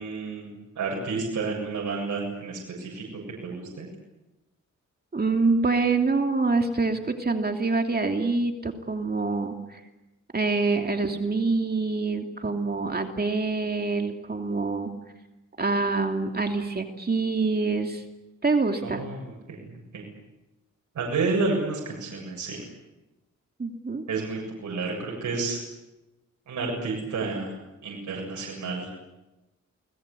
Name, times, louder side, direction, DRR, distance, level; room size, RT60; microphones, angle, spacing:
voice 1, 0.0-3.0 3.4-3.9 18.8-19.6 19.9-20.1 20.9-22.6 24.1-25.6 26.5-27.6 27.8-28.9, right 4 dB, 85° right, -1 dB, 7.4 m, -30 dB
voice 2, 5.1-9.8 10.3-14.9 15.6-18.0 18.4-19.0 23.6-24.0, right 3 dB, 30° right, 4 dB, 2.8 m, -26 dB
29.0 x 20.5 x 8.5 m, 1.0 s
cardioid pair, 85°, 30 cm